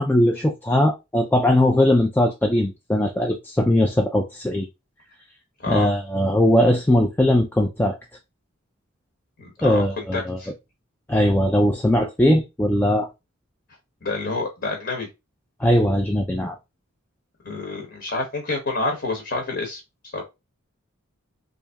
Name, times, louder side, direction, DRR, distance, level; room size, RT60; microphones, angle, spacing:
voice 1, 0.0-4.7 5.7-8.0 9.6-10.4 11.1-13.1 15.6-16.5, left 1 dB, 10° left, 0.3 m, -20 dB
voice 2, 5.6-5.9 9.4-10.5 14.0-15.1 17.4-19.8 20.1-20.2, left 2 dB, 50° left, 1.0 m, -28 dB
3.3 x 2.6 x 3.4 m
head